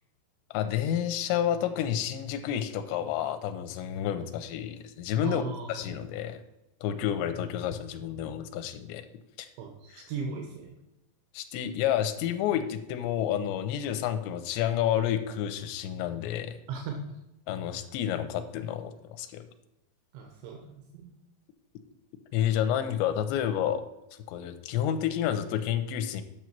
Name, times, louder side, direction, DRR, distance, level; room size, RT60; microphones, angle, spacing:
voice 1, 0.5-6.4 6.8-9.0 9.4-9.5 9.9-10.0 11.3-16.6 17.5-19.5 22.3-23.8 24.3-26.2, left 10 dB, 85° left, 8 dB, 2.9 m, -30 dB
voice 2, 5.2-5.8 9.6-10.8 16.7-17.0 20.1-21.1, right 5 dB, 85° right, 2 dB, 3.2 m, -37 dB
9.0 x 6.3 x 4.5 m, 0.91 s
omnidirectional pair, 5.1 m